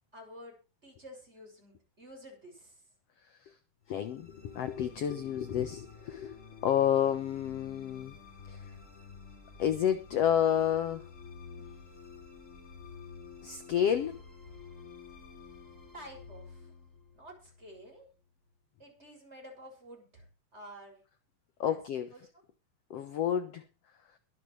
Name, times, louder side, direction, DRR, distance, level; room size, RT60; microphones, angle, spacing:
voice 1, 0.1-2.8 15.9-16.7 17.1-18.1 18.8-20.3 20.5-21.0 21.6-21.8 22.1-22.2, equal, 15° right, 6.6 m, -50 dB
voice 2, 3.9-8.2 8.5-8.6 9.6-11.1 13.4-14.2 21.6-22.1 22.9-23.6, left 9 dB, 60° left, 1.7 m, -30 dB
sound 1, 3.9-18.3, left 5 dB, 20° left, 5.2 m, -50 dB
22.5 x 8.7 x 3.3 m
omnidirectional pair, 4.0 m